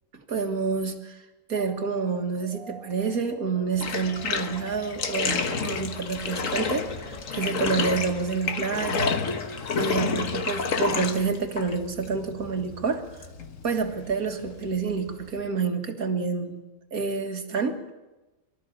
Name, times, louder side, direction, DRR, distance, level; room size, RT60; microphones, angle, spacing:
voice 1, 0.3-1.2 1.5-9.4 9.7-13.2 13.6-16.6 16.9-17.8, right 5 dB, 85° right, 5 dB, 2.2 m, -28 dB
sound 1, 1.5-8.1, right 1 dB, 45° left, 7.1 m, -49 dB
Bathtub (filling or washing), 3.7-15.4, left 5 dB, 65° left, 1.6 m, -30 dB
24.5 x 13.5 x 8.7 m, 1.1 s
omnidirectional pair, 1.5 m